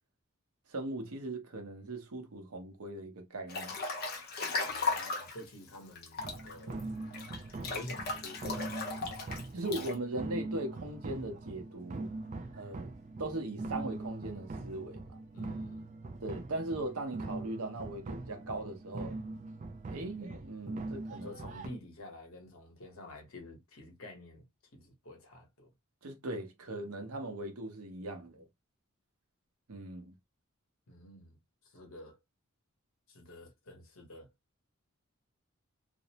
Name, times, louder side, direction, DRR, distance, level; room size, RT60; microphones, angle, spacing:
voice 1, 0.7-3.8 9.5-12.1 12.5-12.9 13.2-15.2 16.2-19.2 19.9-21.3 26.0-28.4 29.7-30.1, right 2 dB, 80° right, 0.7 m, -39 dB
Breathing / Bathtub (filling or washing) / Splash splatter, 3.5-5.4 6.0-9.9, left 4 dB, 45° left, 0.6 m, -36 dB
voice 2, 4.7-6.8 7.5-9.1 15.3-15.9 21.1-24.4 24.7-25.7 30.9-31.4 31.6-32.2 33.1-34.3, left 1 dB, 65° left, 0.9 m, -49 dB
sound 1, 6.2-21.7, right 2 dB, 35° right, 0.3 m, -42 dB
2.5 x 2.0 x 2.8 m
head